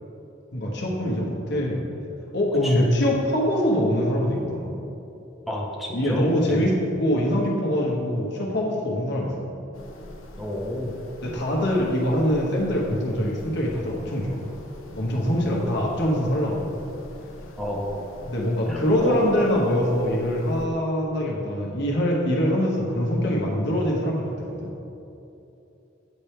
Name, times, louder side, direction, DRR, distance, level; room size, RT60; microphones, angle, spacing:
voice 1, 0.5-1.8 2.3-4.8 5.9-9.5 11.2-14.4 14.9-16.6 18.2-24.7, equal, 60° left, -2 dB, 1.1 m, -24 dB
voice 2, 5.5-6.8 10.4-10.9 17.6-18.0 18.7-19.2, left 1 dB, ahead, -3 dB, 0.5 m, -30 dB
sound 1, 9.7-20.7, left 1 dB, 85° left, 0.7 m, -44 dB
8.3 x 3.4 x 4.3 m, 2.9 s
head